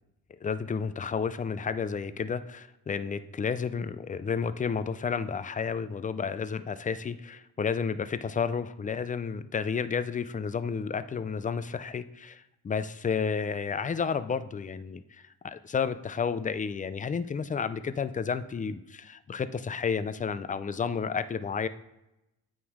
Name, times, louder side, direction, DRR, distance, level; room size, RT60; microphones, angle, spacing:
voice 1, 0.4-21.7, left 6 dB, 25° left, 13 dB, 0.4 m, -31 dB
8.6 x 3.7 x 4.8 m, 0.92 s
cardioid pair, 100°, 35 cm